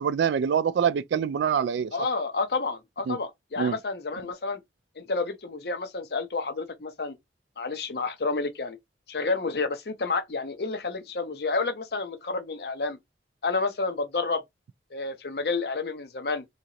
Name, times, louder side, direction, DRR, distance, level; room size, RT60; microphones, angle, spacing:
voice 1, 0.0-1.9 3.1-3.2 3.6-3.7, right 7 dB, 80° right, 0.3 m, -25 dB
voice 2, 1.9-4.6 5.0-7.2 7.6-8.8 9.1-13.0 13.4-14.4 14.9-16.4, left 3 dB, 60° left, 0.7 m, -30 dB
3.7 x 2.9 x 2.9 m
head